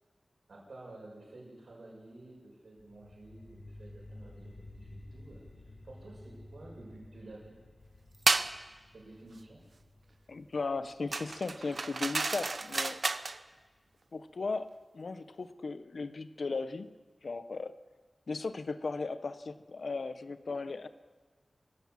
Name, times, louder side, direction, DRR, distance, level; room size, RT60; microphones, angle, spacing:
voice 1, 0.5-5.4 5.8-7.5 8.9-9.6, right 2 dB, 75° right, -3 dB, 6.4 m, -51 dB
sound 1, 2.8-13.8, left 1 dB, 85° left, 5.6 m, -53 dB
sound 2, 8.3-8.5 11.1-13.4, right 3 dB, 55° right, 0.8 m, -31 dB
voice 2, 10.3-13.0 14.1-16.9 17.2-17.8 18.3-20.9, left 3 dB, 70° left, 12 dB, 0.9 m, -37 dB
25.0 x 15.5 x 7.5 m, 1.4 s
wide cardioid pair, 95°, 0 cm